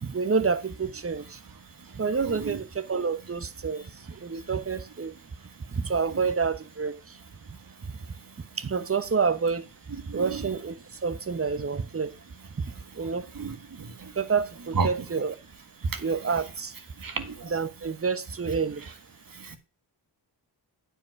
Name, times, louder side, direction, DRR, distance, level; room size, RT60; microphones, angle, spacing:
voice 1, 0.0-1.4 1.9-3.8 4.2-5.2 5.7-7.2 7.8-7.9 8.6-9.7 10.1-10.7 11.0-12.1 13.0-13.2 14.2-15.4 16.0-16.7 17.4-18.8, right 5 dB, 30° right, 1.0 m, -28 dB
voice 2, 13.4-14.1 14.8-14.9 15.9-16.0 17.0-17.5 19.4-19.6, right 4 dB, 50° right, 1.7 m, -32 dB
9.0 x 5.4 x 5.9 m
cardioid pair, 65°, 43 cm